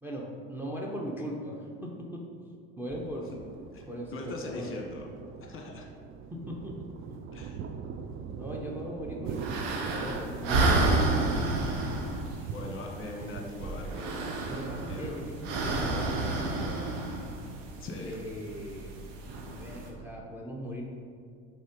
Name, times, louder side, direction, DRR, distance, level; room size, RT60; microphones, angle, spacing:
voice 1, 0.0-2.2 2.8-3.4 3.9-4.7 6.3-7.2 8.4-10.6 14.5-16.8 18.0-19.0 19.6-20.8, equal, 5° right, -2 dB, 0.9 m, -39 dB
Thunder, 2.9-17.7, right 6 dB, 35° right, 0.5 m, -42 dB
voice 2, 4.1-5.0 5.4-5.9 7.3-7.6 12.5-15.2 17.8-18.2, left 2 dB, 35° left, 1 dB, 1.2 m, -41 dB
sound 1, 9.3-19.9, right 2 dB, 75° right, 1.1 m, -31 dB
5.3 x 3.8 x 5.3 m, 2.2 s
hypercardioid pair, 75°, 36 cm